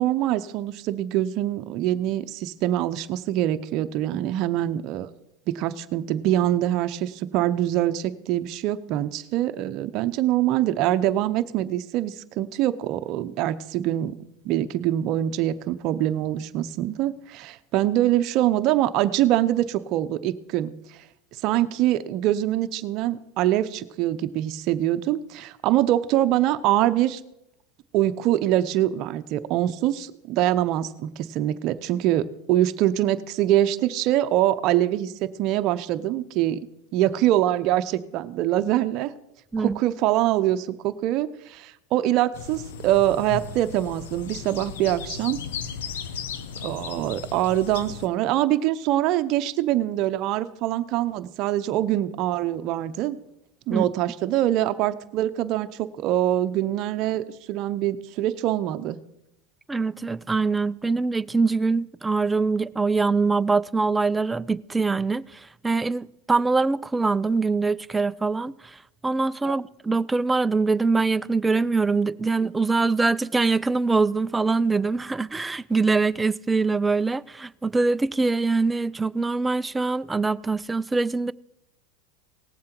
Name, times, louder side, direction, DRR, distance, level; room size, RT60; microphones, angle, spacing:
voice 1, 0.0-5.1 5.5-14.2 14.4-20.7 21.4-27.2 27.9-36.6 36.9-39.1 39.6-45.4 46.6-53.2 53.7-59.0 69.4-69.5, right 13 dB, 50° right, 0.6 m, -24 dB
sound 1, 42.3-48.1, left 7 dB, 80° left, 0.8 m, -36 dB
voice 2, 59.7-68.8 69.0-81.3, right 3 dB, 10° right, 0.3 m, -23 dB
18.0 x 7.5 x 4.5 m
supercardioid pair, 120°, 0 cm